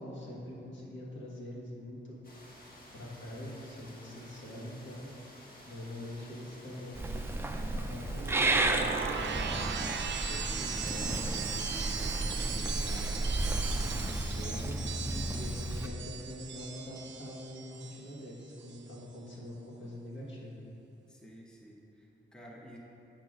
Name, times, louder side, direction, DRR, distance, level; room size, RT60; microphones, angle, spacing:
voice 1, 0.0-2.2 2.9-5.1 5.7-7.1 7.6-9.5 10.2-15.0 15.3-20.6, left 1 dB, 70° left, -5 dB, 1.6 m, -44 dB
sound 1, 2.2-12.5, left 1 dB, 50° left, 1.4 m, -53 dB
voice 2, 6.4-6.7 15.0-15.4 21.1-22.8, equal, 5° left, -2 dB, 0.8 m, -51 dB
Purr / Meow, 6.9-15.9, right 2 dB, 10° right, 0.4 m, -33 dB
sound 2, 8.1-18.2 18.5-18.9, right 6 dB, 70° right, 0.5 m, -38 dB
7.2 x 3.7 x 6.2 m, 2.9 s
wide cardioid pair, 105°, 19 cm